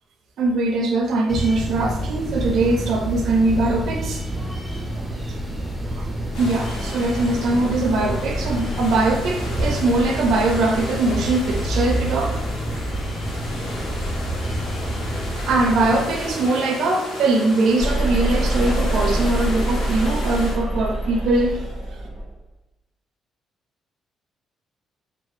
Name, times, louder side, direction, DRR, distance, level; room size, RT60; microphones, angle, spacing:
voice 1, 0.4-4.2 6.4-12.4 15.5-21.6, right 2 dB, 75° right, 2 dB, 0.4 m, -21 dB
sound 1, 1.3-16.3, right 1 dB, 10° right, 0.6 m, -28 dB
sound 2, 6.3-20.5, left 1 dB, 80° left, 0.6 m, -34 dB
sound 3, 17.8-22.3, right 1 dB, 40° left, 0.7 m, -24 dB
2.7 x 2.0 x 2.4 m, 0.84 s
cardioid pair, 90°, 0 cm